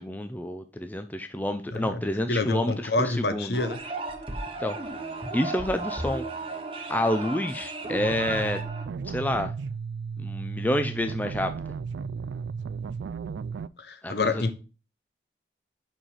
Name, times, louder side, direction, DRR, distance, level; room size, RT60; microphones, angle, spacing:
voice 1, 0.0-3.6 4.6-4.8 5.3-6.3 6.9-8.6 9.1-9.5 10.2-11.5 14.0-14.4, left 1 dB, 10° left, 0.4 m, -28 dB
voice 2, 1.7-2.0 2.3-3.8 13.8-14.5, left 3 dB, 65° left, 0.8 m, -27 dB
sound 1, 3.5-8.9, right 2 dB, 30° right, 0.9 m, -35 dB
sound 2, 8.0-13.7, right 5 dB, 75° right, 0.3 m, -34 dB
5.7 x 5.1 x 4.9 m
head